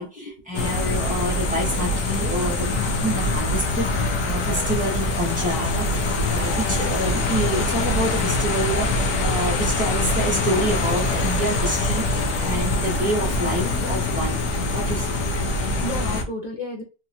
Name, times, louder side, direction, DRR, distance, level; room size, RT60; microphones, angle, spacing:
voice 1, 0.0-14.4 14.7-15.1, right 1 dB, 5° right, 1.2 m, -28 dB
sound 1, 0.5-16.2, left 2 dB, 65° left, 1.3 m, -24 dB
voice 2, 6.2-7.2 15.6-16.8, left 1 dB, 45° left, 0.6 m, -34 dB
3.6 x 3.0 x 2.7 m
omnidirectional pair, 1.9 m